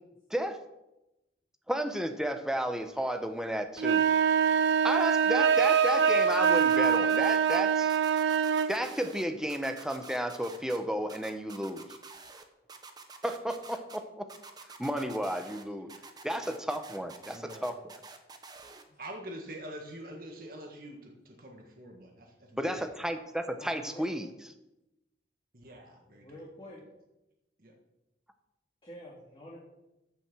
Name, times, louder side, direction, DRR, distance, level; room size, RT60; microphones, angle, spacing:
voice 1, 1.7-4.1 4.8-8.0 8.7-11.9 13.2-14.3 14.8-15.9 16.2-17.7 22.6-24.3, equal, 5° right, 7 dB, 0.9 m, -32 dB
sound 1, 3.8-8.7, right 7 dB, 85° right, 0.5 m, -24 dB
sound 2, 6.3-7.6 7.9-9.2 9.5-10.8 11.1-12.4 12.7-14.0 14.3-15.6 15.9-18.8, right 4 dB, 25° right, 1.0 m, -48 dB
voice 2, 17.3-17.7 19.0-22.9 25.5-26.3 27.6-27.7, right 1 dB, 55° right, 1 dB, 1.7 m, -45 dB
voice 3, 23.6-24.1 26.0-26.8 28.8-29.6, equal, 30° left, -5 dB, 2.5 m, -47 dB
14.5 x 6.1 x 6.2 m, 0.93 s
head